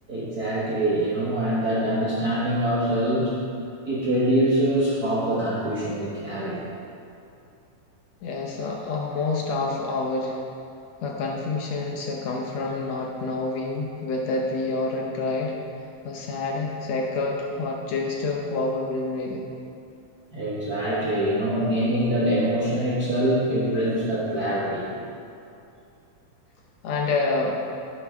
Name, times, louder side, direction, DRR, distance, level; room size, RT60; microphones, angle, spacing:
voice 1, 0.1-3.3 3.8-6.6 20.3-24.9, right 1 dB, 45° right, -7 dB, 1.2 m, -24 dB
voice 2, 8.2-10.4 11.0-15.6 16.1-19.4 26.8-27.6, left 3 dB, 70° left, 0 dB, 1.8 m, -27 dB
11.5 x 9.6 x 3.5 m, 2.6 s
omnidirectional pair, 3.5 m